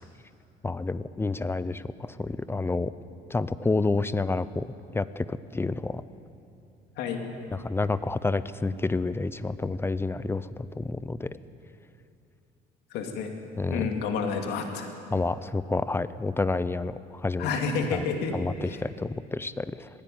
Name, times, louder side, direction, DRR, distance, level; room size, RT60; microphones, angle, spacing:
voice 1, 0.6-2.9 3.3-4.7 4.9-6.0 7.6-11.3 13.6-13.9 15.1-17.5 17.9-18.0 18.3-19.9, left 3 dB, 15° left, 15 dB, 0.6 m, -29 dB
voice 2, 12.9-13.3 13.7-14.9 17.4-18.8, left 5 dB, 85° left, 4 dB, 2.7 m, -30 dB
19.5 x 16.0 x 9.4 m, 2.5 s
cardioid pair, 110°, 17 cm